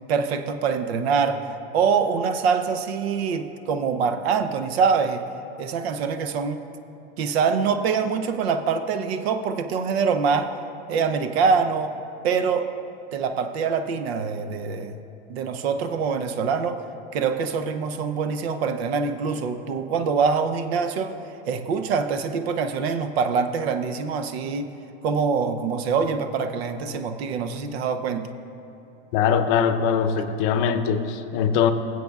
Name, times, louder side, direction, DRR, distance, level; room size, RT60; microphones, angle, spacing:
voice 1, 0.1-1.5 1.7-5.2 5.6-6.6 7.2-10.5 10.9-11.9 12.2-12.7 13.1-15.0 15.3-16.8 17.1-21.1 21.5-24.7 25.0-28.3, right 5 dB, 90° right, 9 dB, 0.7 m, -24 dB
voice 2, 29.1-31.7, left 7 dB, 55° left, 9 dB, 0.6 m, -22 dB
21.0 x 7.7 x 2.4 m, 3.0 s
supercardioid pair, 140°, 30 cm